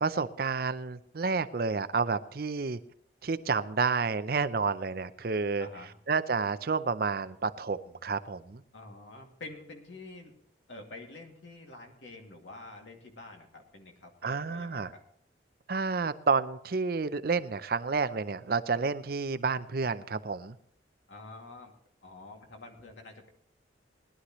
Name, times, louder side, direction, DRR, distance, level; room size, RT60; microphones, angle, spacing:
voice 1, 0.0-2.8 3.2-5.7 6.1-8.6 14.2-14.9 15.7-20.6, right 4 dB, 55° right, 13 dB, 0.6 m, -30 dB
voice 2, 5.6-5.9 8.7-10.3 10.7-15.0 21.1-21.7 22.0-23.3, left 2 dB, 90° left, 2 dB, 2.4 m, -47 dB
19.0 x 11.5 x 3.1 m, 0.66 s
head